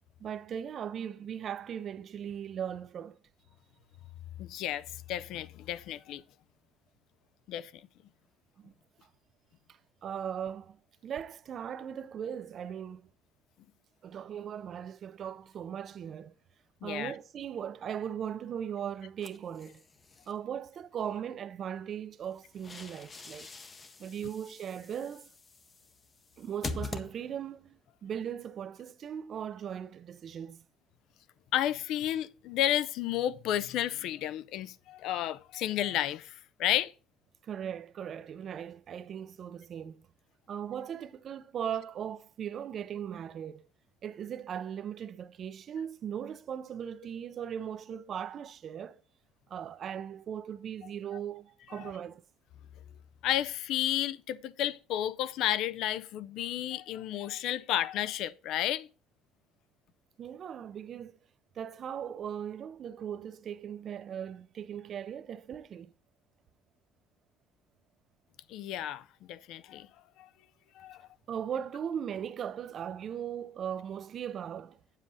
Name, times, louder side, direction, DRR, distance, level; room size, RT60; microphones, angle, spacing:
voice 1, 0.2-3.2 8.6-8.7 10.0-13.1 14.0-16.3 16.8-19.8 20.3-23.5 24.0-25.3 26.4-30.6 37.4-40.1 40.5-43.6 44.0-49.0 49.5-52.2 60.2-61.2 61.6-65.9 71.3-74.8, right 8 dB, 35° right, 0.5 m, -38 dB
voice 2, 4.4-6.2 7.5-7.8 16.8-17.1 31.5-36.9 51.7-51.9 53.2-58.9 68.5-69.9 70.2-70.3 70.8-71.1, left 12 dB, 55° left, 0.4 m, -32 dB
sound 1, 19.2-20.3 22.2-27.6, left 3 dB, 20° left, 0.6 m, -44 dB
8.8 x 7.4 x 4.0 m
cardioid pair, 180°, 0 cm